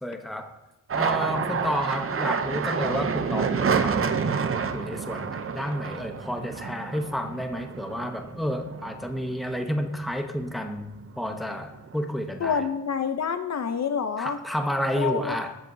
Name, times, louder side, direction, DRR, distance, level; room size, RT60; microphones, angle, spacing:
voice 1, 0.0-0.5 0.9-12.7 14.2-15.6, equal, ahead, 5 dB, 0.8 m, -31 dB
sound 1, 0.9-9.6 10.0-10.8 11.1-12.0, right 6 dB, 45° right, 0.6 m, -29 dB
voice 2, 12.4-14.4 15.0-15.4, left 6 dB, 55° left, 9 dB, 0.6 m, -27 dB
19.5 x 8.0 x 2.7 m, 0.96 s
wide cardioid pair, 155°, 32 cm